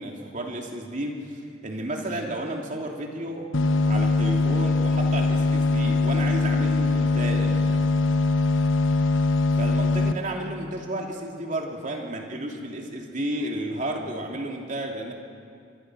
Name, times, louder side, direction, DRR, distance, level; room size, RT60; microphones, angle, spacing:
voice 1, 0.0-3.5 3.9-7.8 9.5-15.1, right 1 dB, 40° right, 1 dB, 3.0 m, -32 dB
sound 1, 3.5-10.1, left 3 dB, 90° left, 1.2 m, -22 dB
27.5 x 23.5 x 6.4 m, 2.3 s
head